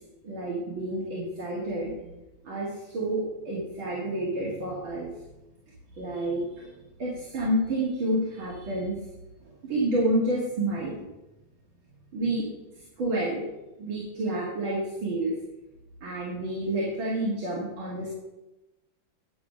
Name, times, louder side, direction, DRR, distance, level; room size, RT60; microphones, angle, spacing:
voice 1, 0.2-2.2 2.4-5.1 6.0-6.7 7.0-9.0 9.6-10.9 12.1-12.5 13.0-13.4 13.8-15.3 16.0-18.1, right 1 dB, 80° right, -5 dB, 3.1 m, -29 dB
11.0 x 7.4 x 5.9 m, 0.99 s
omnidirectional pair, 2.2 m